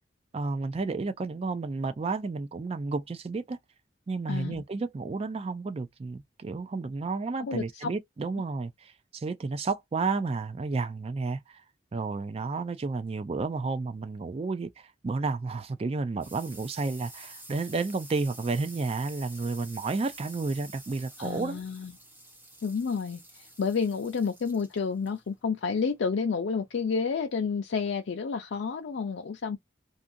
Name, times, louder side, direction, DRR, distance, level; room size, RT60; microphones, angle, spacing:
voice 1, 0.3-3.6 4.1-11.6 11.9-21.6, right 3 dB, 30° right, 0.3 m, -31 dB
voice 2, 4.3-4.6 7.4-7.9 21.2-21.9 22.6-29.6, left 5 dB, 75° left, 0.4 m, -30 dB
sound 1, 15.7-26.8, right 1 dB, 10° right, 0.8 m, -50 dB
2.7 x 2.5 x 2.5 m
head